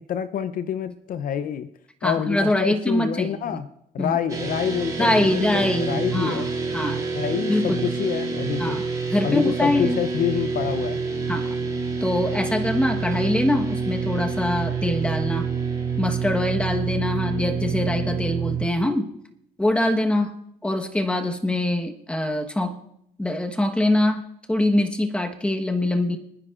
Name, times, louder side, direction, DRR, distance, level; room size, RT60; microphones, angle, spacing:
voice 1, 0.0-1.7 2.0-3.7 3.9-6.5 7.2-8.8 9.2-11.0, left 9 dB, 55° left, 12 dB, 0.6 m, -27 dB
voice 2, 2.0-3.6 4.0-4.2 5.0-6.5 6.7-7.0 7.5-7.8 8.6-8.8 9.1-10.0 11.3-11.6 12.0-15.5 16.0-19.1 19.6-20.3 20.6-22.8 23.2-26.2, left 1 dB, 5° left, 4 dB, 1.2 m, -23 dB
sound 1, 4.3-18.7, right 5 dB, 20° right, 3.8 m, -27 dB
25.5 x 9.9 x 2.5 m, 0.76 s
cardioid pair, 110°, 17 cm